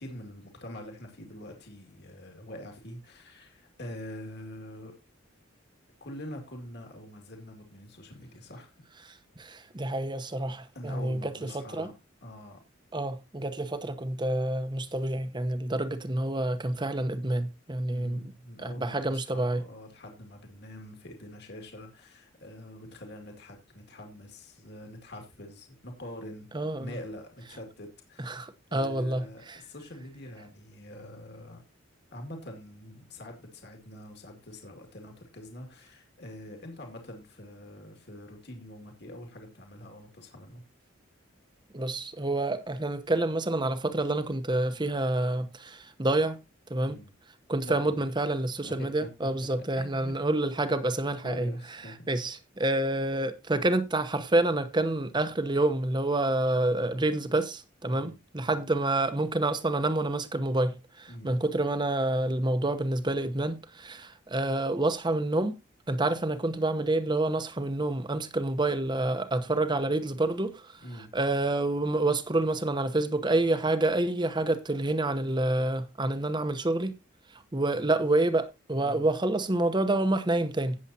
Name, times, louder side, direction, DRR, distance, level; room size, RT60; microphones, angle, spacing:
voice 1, 0.0-4.9 6.0-8.7 10.7-11.9 12.2-12.6 17.9-26.5 26.8-28.4 28.7-31.6 32.1-40.6 46.8-47.1 47.6-48.1 48.6-49.3 49.7-50.1 51.2-52.1 57.9-58.2 61.1-61.4 70.8-71.1 78.8-79.1, left 1 dB, 55° left, 2.3 m, -45 dB
voice 2, 9.4-11.9 12.9-18.3 18.6-19.6 26.5-26.9 28.2-29.6 41.7-46.4 46.7-47.0 47.5-51.5 52.1-65.5 65.9-70.6 71.1-77.0 77.5-80.8, right 2 dB, 20° right, 0.9 m, -28 dB
17.5 x 7.3 x 2.8 m
head